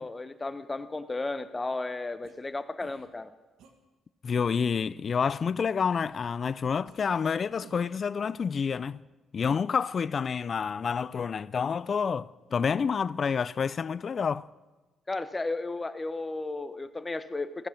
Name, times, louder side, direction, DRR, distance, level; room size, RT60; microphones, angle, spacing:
voice 1, 0.0-3.3 15.1-17.7, left 2 dB, 20° left, 0.9 m, -34 dB
sound 1, 2.2-2.3 2.8-3.1 3.6-3.7 4.3-4.7 5.2-5.3 5.9-6.3 6.8-7.0 7.6-8.0, right 6 dB, 80° right, 1.6 m, -55 dB
voice 2, 4.2-9.0 9.3-14.5, left 6 dB, 45° left, 0.4 m, -28 dB
15.5 x 14.5 x 5.9 m
cardioid pair, 90°, 0 cm